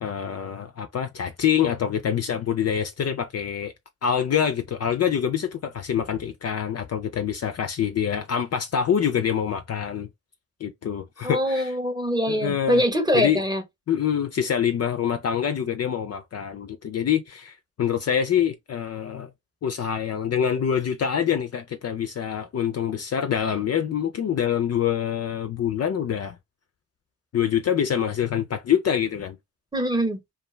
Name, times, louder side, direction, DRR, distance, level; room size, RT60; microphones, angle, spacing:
voice 1, 0.0-3.7 4.0-10.1 10.6-11.7 12.3-12.8 13.1-13.4 13.9-19.3 19.6-26.4 27.3-29.4, left 8 dB, 45° left, 0.4 m, -25 dB
voice 2, 11.2-13.6 29.7-30.2, equal, 10° right, 0.9 m, -23 dB
2.4 x 2.2 x 3.1 m
supercardioid pair, 50°, 36 cm